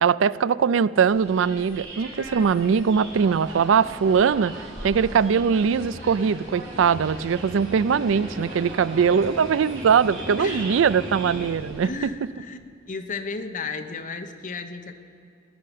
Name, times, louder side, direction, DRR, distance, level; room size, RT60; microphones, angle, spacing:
voice 1, 0.0-11.9, right 6 dB, 90° right, 18 dB, 0.4 m, -21 dB
sound 1, 1.1-11.9, right 1 dB, 65° right, 4.7 m, -41 dB
sound 2, 2.9-11.5, equal, 45° right, 3.7 m, -39 dB
voice 2, 10.4-10.7 11.8-12.6 12.9-14.9, left 4 dB, 45° left, 7 dB, 1.1 m, -33 dB
17.5 x 6.6 x 10.0 m, 2.5 s
head